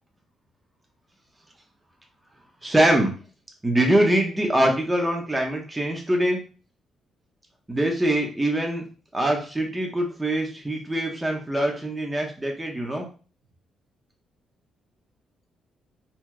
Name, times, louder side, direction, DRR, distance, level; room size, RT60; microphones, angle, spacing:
voice 1, 2.6-3.1 3.6-6.4 7.7-8.8 9.1-13.1, right 1 dB, 15° right, 2 dB, 1.1 m, -23 dB
4.3 x 3.0 x 2.3 m, 0.37 s
cardioid pair, 90°, 0 cm